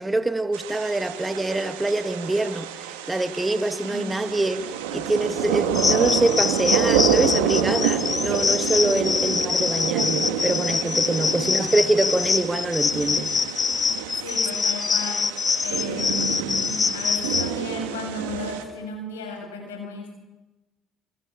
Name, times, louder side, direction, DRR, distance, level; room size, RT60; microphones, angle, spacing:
voice 1, 0.0-13.4, right 2 dB, 15° right, 2.5 m, -25 dB
sound 1, 0.5-18.6, right 9 dB, 80° right, 3.0 m, -28 dB
voice 2, 3.8-4.2 9.1-9.3 11.2-11.5 14.2-20.2, left 3 dB, 90° left, 7.6 m, -35 dB
sound 2, 5.7-17.5, left 5 dB, 40° left, 1.7 m, -25 dB
28.0 x 26.5 x 7.4 m
hypercardioid pair, 60°, 0 cm